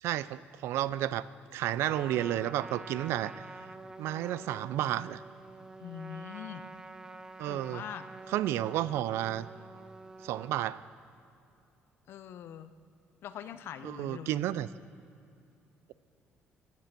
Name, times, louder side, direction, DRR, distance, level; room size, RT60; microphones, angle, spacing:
voice 1, 0.0-1.3 1.5-3.5 4.0-5.2 7.4-7.8 8.3-9.5 10.2-10.8 13.8-14.7, right 13 dB, 85° right, 17 dB, 0.4 m, -31 dB
Trumpet, 1.8-10.6, right 3 dB, 15° right, 0.5 m, -47 dB
voice 2, 5.8-6.6 7.5-8.0 12.1-12.7 13.2-14.4, left 9 dB, 65° left, 11 dB, 0.7 m, -43 dB
15.0 x 10.5 x 6.0 m, 2.6 s
cardioid pair, 135°, 4 cm